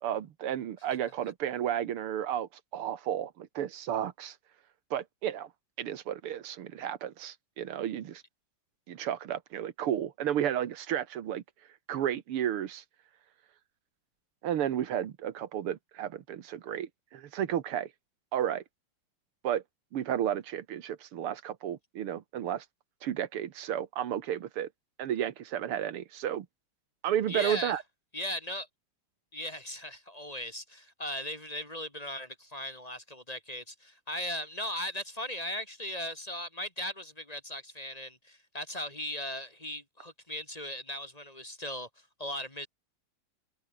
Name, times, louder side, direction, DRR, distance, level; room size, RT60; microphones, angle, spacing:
voice 1, 0.0-4.4 4.9-5.5 5.8-8.2 8.9-11.4 11.9-12.8 14.4-17.9 18.3-18.6 19.4-19.6 19.9-22.7 23.0-24.7 25.0-26.5 27.0-27.8, right 10 dB, 90° right, 2.2 m, -32 dB
voice 2, 27.3-27.8 28.1-28.7 29.3-41.9 42.2-42.7, left 1 dB, 15° left, 2.7 m, -38 dB
omnidirectional pair, 2.4 m